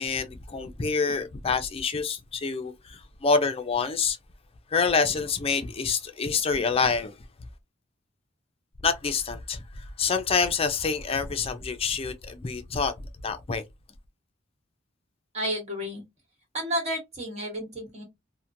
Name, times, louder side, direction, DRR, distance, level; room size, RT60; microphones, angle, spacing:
voice 1, 0.0-4.2 4.7-7.2 8.8-12.9 13.2-13.6, left 5 dB, 30° left, 0.4 m, -27 dB
voice 2, 15.3-16.0 16.5-18.0, equal, 35° right, 1.3 m, -31 dB
2.9 x 2.1 x 2.5 m
head